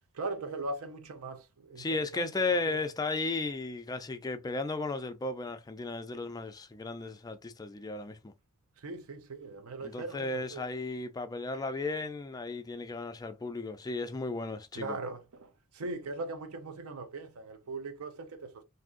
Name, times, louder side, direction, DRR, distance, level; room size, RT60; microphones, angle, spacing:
voice 1, 0.1-2.8 8.8-10.7 14.7-18.6, right 3 dB, 85° right, 0.6 m, -40 dB
voice 2, 1.8-8.3 9.8-15.0, left 3 dB, 15° left, 0.3 m, -35 dB
2.6 x 2.5 x 3.6 m
head